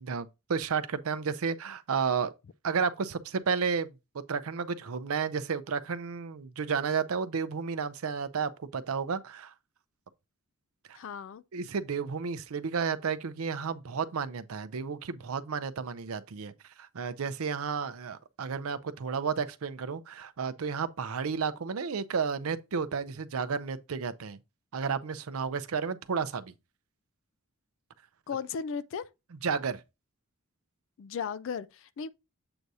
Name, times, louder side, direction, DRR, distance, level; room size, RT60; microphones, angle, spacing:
voice 1, 0.0-2.3 2.6-3.9 4.3-9.5 11.5-16.5 16.8-24.4 24.7-26.5 29.4-29.8, right 5 dB, 75° right, 0.5 m, -32 dB
voice 2, 10.9-11.4 28.3-29.0 31.0-32.1, left 6 dB, 60° left, 0.3 m, -36 dB
7.8 x 2.7 x 4.6 m
head